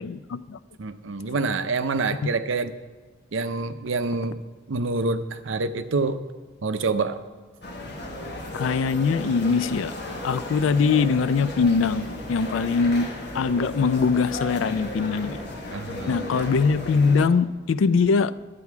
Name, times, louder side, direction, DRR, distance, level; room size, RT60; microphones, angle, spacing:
voice 1, 0.0-0.6 8.5-9.9 10.2-13.1 13.3-15.4 16.1-18.3, left 5 dB, 80° left, 16 dB, 0.4 m, -22 dB
voice 2, 0.8-2.7 3.3-4.4 4.7-6.2 6.6-7.2 15.7-16.5, right 3 dB, 75° right, 10 dB, 0.6 m, -27 dB
sound 1, 7.6-17.3, left 1 dB, 55° left, 1.4 m, -35 dB
11.0 x 8.4 x 4.7 m, 1.3 s
head